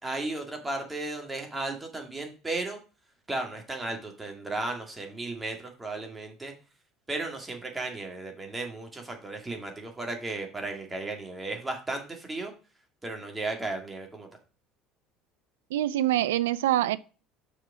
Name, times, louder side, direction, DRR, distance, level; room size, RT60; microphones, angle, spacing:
voice 1, 0.0-2.8 3.3-6.5 7.1-12.5 13.0-14.3, right 2 dB, 15° right, 2.1 m, -35 dB
voice 2, 15.7-17.0, right 13 dB, 75° right, 0.3 m, -25 dB
6.0 x 5.0 x 4.9 m
hypercardioid pair, 65°, 0 cm